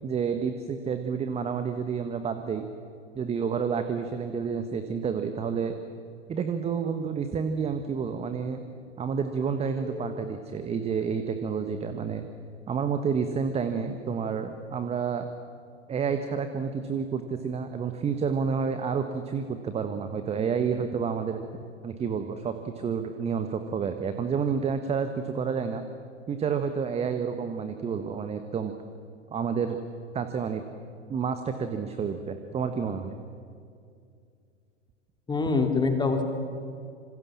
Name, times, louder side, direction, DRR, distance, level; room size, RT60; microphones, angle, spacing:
voice 1, 0.0-2.6 3.1-5.7 6.3-8.6 9.0-12.3 12.7-15.3 15.9-21.4 21.8-25.8 26.3-28.7 29.3-29.8 30.1-30.6 31.1-33.2, right 6 dB, 15° right, 8 dB, 1.4 m, -29 dB
voice 2, 9.8-10.2 35.3-36.2, left 4 dB, 10° left, 4 dB, 2.8 m, -26 dB
26.5 x 26.5 x 7.4 m, 2.4 s
figure-of-eight pair, 100°, 37 cm